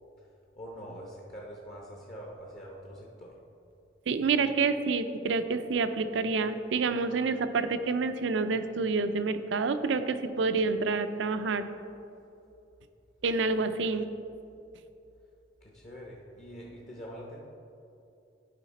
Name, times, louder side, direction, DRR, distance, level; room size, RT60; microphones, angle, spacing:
voice 1, 0.5-3.4 15.6-17.4, equal, 40° left, -2 dB, 0.8 m, -44 dB
voice 2, 4.1-11.6 13.2-14.1, right 4 dB, 75° right, 10 dB, 0.5 m, -28 dB
11.0 x 4.9 x 4.1 m, 2.7 s
head